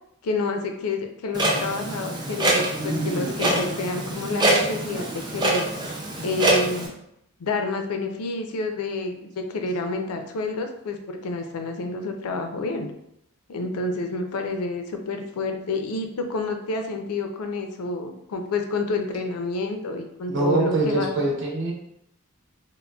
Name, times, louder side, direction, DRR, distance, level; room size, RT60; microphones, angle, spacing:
voice 1, 0.2-5.7 6.2-6.9 7.4-12.9 13.5-21.2, left 3 dB, 75° left, 5 dB, 0.4 m, -29 dB
Clock, 1.3-6.9, right 2 dB, 20° right, 0.3 m, -25 dB
voice 2, 20.3-21.7, right 2 dB, 55° right, -2 dB, 0.7 m, -23 dB
3.7 x 2.0 x 2.2 m, 0.78 s
head